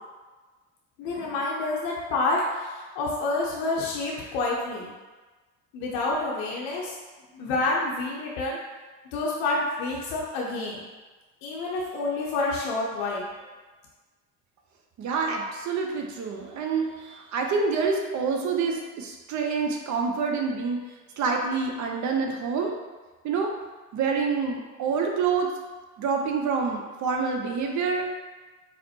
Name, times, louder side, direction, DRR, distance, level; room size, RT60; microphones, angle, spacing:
voice 1, 1.0-4.9 5.7-6.9 7.4-8.6 9.1-10.8 11.4-13.3, left 2 dB, 65° left, -4 dB, 0.6 m, -28 dB
voice 2, 15.0-20.8 21.2-22.7 23.2-23.5 23.9-25.5 26.0-28.1, right 5 dB, 40° right, 2 dB, 0.6 m, -27 dB
4.1 x 2.1 x 2.7 m, 1.3 s
hypercardioid pair, 60°, 43 cm